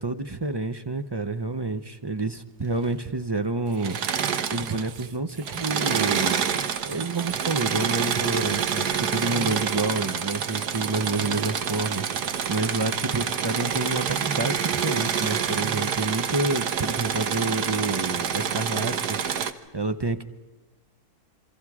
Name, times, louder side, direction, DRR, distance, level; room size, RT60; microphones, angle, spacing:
voice 1, 0.0-4.0 4.5-6.4 6.9-12.0 12.5-19.2 19.7-20.2, right 3 dB, 35° right, 10 dB, 0.4 m, -28 dB
Engine / Mechanisms, 3.7-5.1 5.4-19.5, right 7 dB, 85° right, 1.6 m, -27 dB
27.5 x 24.0 x 4.9 m, 1.2 s
omnidirectional pair, 1.7 m